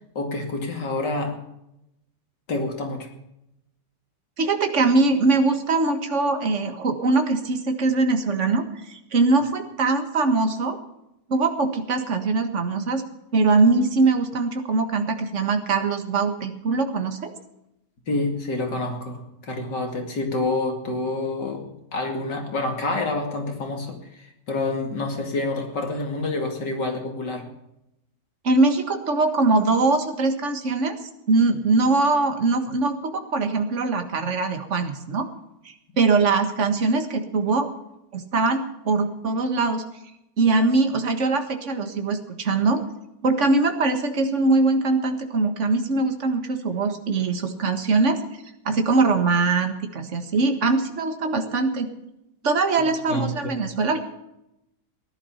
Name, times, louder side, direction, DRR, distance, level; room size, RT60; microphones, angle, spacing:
voice 1, 0.1-1.4 2.5-3.1 18.1-21.6 21.9-27.5 52.8-53.5, left 2 dB, 75° left, 3 dB, 3.0 m, -28 dB
voice 2, 4.4-10.8 11.3-13.0 13.3-17.3 28.4-31.0 31.3-35.3 36.0-37.7 38.1-39.9 40.4-42.8 43.2-48.2 48.7-51.9 52.4-54.0, right 3 dB, 45° right, 6 dB, 1.8 m, -22 dB
17.0 x 11.5 x 5.7 m, 0.84 s
omnidirectional pair, 1.9 m